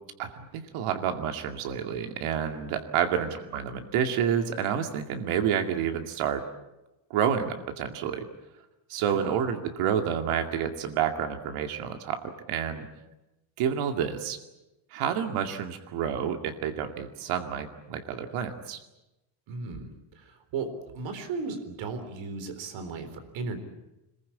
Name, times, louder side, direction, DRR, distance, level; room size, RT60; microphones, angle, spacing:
voice 1, 0.2-6.4 7.1-8.3 8.9-12.9 13.6-14.4 14.9-18.8, right 8 dB, 80° right, 5 dB, 2.5 m, -29 dB
voice 2, 9.0-9.4 19.5-23.6, right 4 dB, 65° right, 8 dB, 4.0 m, -36 dB
26.5 x 21.5 x 8.6 m, 0.96 s
cardioid pair, 165°, 49 cm